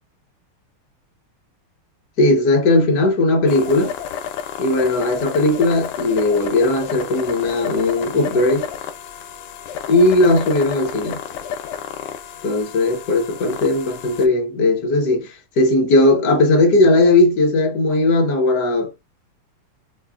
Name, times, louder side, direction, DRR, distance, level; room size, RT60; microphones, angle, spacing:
voice 1, 2.2-3.9 4.6-8.7 9.9-11.2 12.4-18.9, left 2 dB, 55° left, 1.5 m, -17 dB
sound 1, 3.5-14.3, left 9 dB, 90° left, 1.6 m, -31 dB
5.6 x 2.4 x 2.3 m
omnidirectional pair, 2.4 m